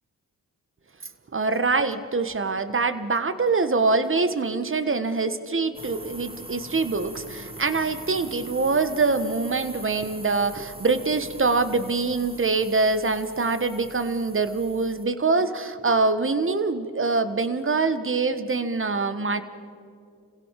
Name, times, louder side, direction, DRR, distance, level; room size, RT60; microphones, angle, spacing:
voice 1, 1.3-19.4, right 3 dB, 35° right, 11 dB, 1.5 m, -24 dB
sound 1, 5.7-15.1, right 2 dB, 15° right, 1.5 m, -42 dB
27.5 x 16.5 x 6.0 m, 2.3 s
cardioid pair, 55°, 38 cm